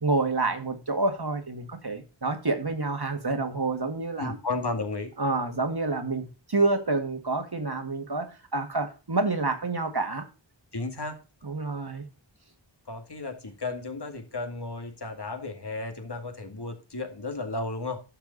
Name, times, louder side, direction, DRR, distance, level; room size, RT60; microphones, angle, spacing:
voice 1, 0.0-4.4 5.2-10.3 11.4-12.0, right 3 dB, 55° right, 2.1 m, -28 dB
voice 2, 4.2-5.1 10.7-11.2 12.9-18.0, left 3 dB, 55° left, 2.3 m, -33 dB
12.0 x 7.0 x 4.1 m
wide cardioid pair, 60°, 46 cm